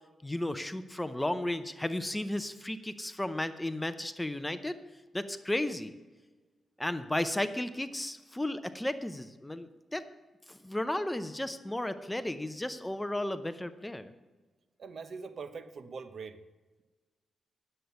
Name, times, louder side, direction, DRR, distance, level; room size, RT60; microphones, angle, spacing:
voice 1, 0.2-4.8 5.1-5.9 6.8-10.0 10.5-14.1, left 1 dB, 10° left, 11 dB, 0.6 m, -34 dB
voice 2, 14.8-16.4, right 5 dB, 60° right, 11 dB, 0.8 m, -42 dB
9.9 x 7.8 x 6.9 m, 1.3 s
cardioid pair, 105°, 0 cm